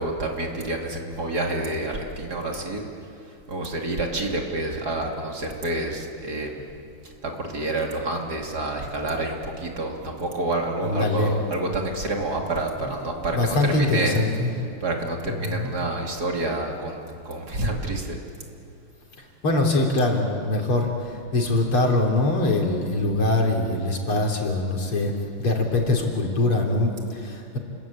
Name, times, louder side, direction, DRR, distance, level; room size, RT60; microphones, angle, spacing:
voice 1, 0.0-2.8 3.5-6.6 7.0-14.2 14.8-18.2, right 2 dB, 45° right, 1 dB, 3.3 m, -28 dB
voice 2, 10.8-11.3 13.3-14.5 15.4-15.7 19.4-25.1 25.4-27.6, left 2 dB, 75° left, 1 dB, 4.2 m, -23 dB
29.5 x 22.0 x 8.8 m, 2.5 s
omnidirectional pair, 2.4 m